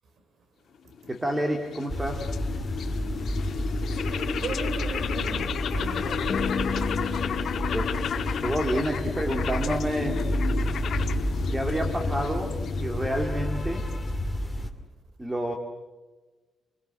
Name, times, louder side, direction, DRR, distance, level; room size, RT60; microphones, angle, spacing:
sound 1, 0.9-14.3, left 7 dB, 60° left, 1.6 m, -33 dB
voice 1, 1.1-2.3 7.7-8.1 8.4-10.3 11.5-13.9 15.2-15.5, right 1 dB, 10° right, 2.4 m, -29 dB
sound 2, 1.9-14.7, equal, 10° left, 2.5 m, -30 dB
voice 2, 4.1-6.8, right 1 dB, 65° right, 4.3 m, -37 dB
sound 3, 6.3-10.6, left 6 dB, 30° left, 3.1 m, -35 dB
29.5 x 22.0 x 7.7 m
cardioid pair, 140°, 0 cm